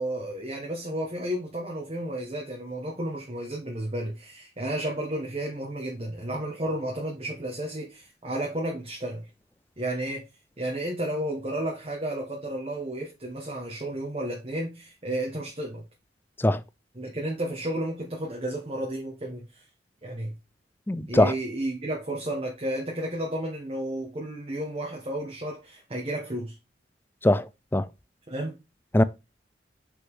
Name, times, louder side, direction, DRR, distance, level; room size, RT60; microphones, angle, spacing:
voice 1, 0.0-9.3 9.8-10.2 10.6-15.8 17.0-19.6 20.0-20.3 21.1-26.6 28.3-28.6, right 1 dB, 35° right, 1.6 m, -32 dB
voice 2, 20.9-21.3 27.2-27.9 28.9-29.0, left 1 dB, 10° left, 0.4 m, -21 dB
6.1 x 6.0 x 3.8 m
head